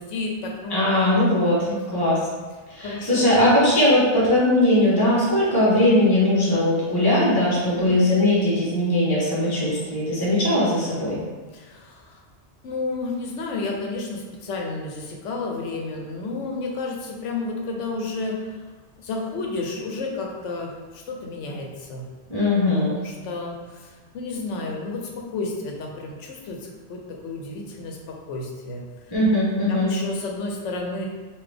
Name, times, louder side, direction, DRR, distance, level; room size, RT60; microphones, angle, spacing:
voice 1, 0.0-0.9 1.7-2.1 2.8-3.2 7.6-8.0 11.5-12.2 12.6-18.4 19.0-22.0 22.8-25.0 25.3-26.6 26.9-28.0 28.3-28.8 29.7-31.1, left 3 dB, 85° left, 0 dB, 1.0 m, -31 dB
voice 2, 0.7-2.2 2.7-11.2 22.3-22.9 29.1-29.9, left 1 dB, 20° left, -8 dB, 1.1 m, -20 dB
3.8 x 2.5 x 3.4 m, 1.3 s
omnidirectional pair, 1.2 m